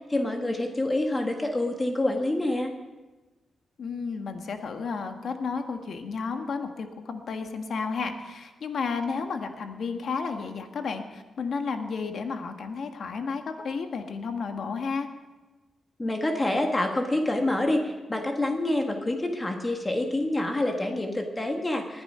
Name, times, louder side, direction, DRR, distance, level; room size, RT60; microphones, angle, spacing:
voice 1, 0.1-2.7 16.0-22.0, left 1 dB, 20° left, 4 dB, 1.5 m, -27 dB
voice 2, 3.8-15.1, left 5 dB, 60° left, 6 dB, 1.6 m, -32 dB
19.5 x 10.5 x 5.6 m, 1.2 s
cardioid pair, 115°, 0 cm